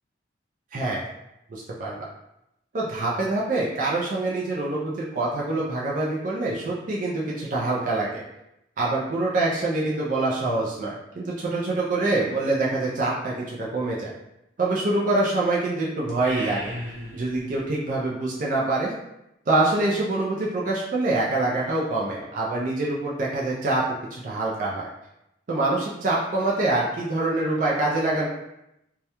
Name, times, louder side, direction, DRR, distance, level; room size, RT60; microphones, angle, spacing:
voice 1, 0.7-1.0 1.5-2.1 2.7-8.2 8.8-14.1 14.6-16.7 17.1-18.9 19.5-23.8 24.1-24.9 25.5-28.3, right 2 dB, 45° right, -5 dB, 0.4 m, -25 dB
sound 1, 16.1-17.7, equal, 85° right, 0.7 m, -36 dB
2.3 x 2.1 x 2.8 m, 0.86 s
head